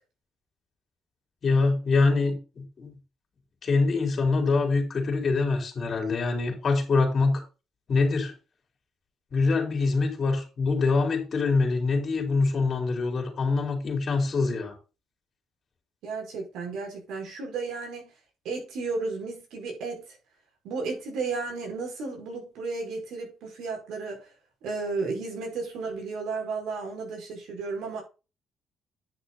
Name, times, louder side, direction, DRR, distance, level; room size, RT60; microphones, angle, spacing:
voice 1, 1.4-2.9 3.6-7.4 7.9-8.3 9.3-14.7, left 3 dB, 50° left, 3.7 m, -24 dB
voice 2, 16.0-18.1 18.4-20.2 20.6-24.3 24.6-28.0, right 4 dB, 85° right, 4.9 m, -33 dB
10.0 x 6.2 x 3.9 m
cardioid pair, 90°, 0 cm